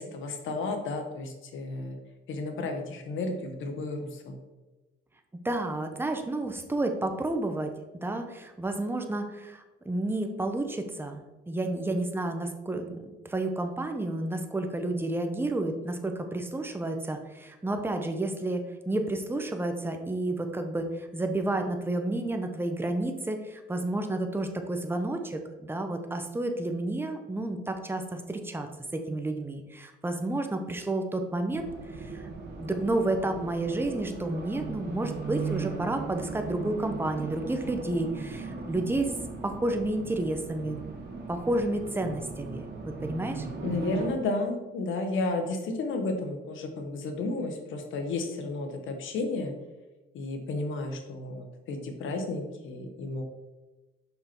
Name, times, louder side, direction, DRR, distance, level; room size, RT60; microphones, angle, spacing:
voice 1, 0.0-2.0 2.3-4.4 43.6-49.6 50.1-53.2, left 3 dB, 80° left, 5 dB, 1.2 m, -32 dB
voice 2, 5.4-7.7 8.0-13.0 13.2-32.3 32.6-39.1 39.4-40.8 41.3-43.5, right 2 dB, 10° right, 5 dB, 0.9 m, -31 dB
Race car auto racing, 31.5-44.1, right 4 dB, 55° right, 1.6 m, -38 dB
5.8 x 5.6 x 4.5 m, 1.1 s
cardioid pair, 90°, 20 cm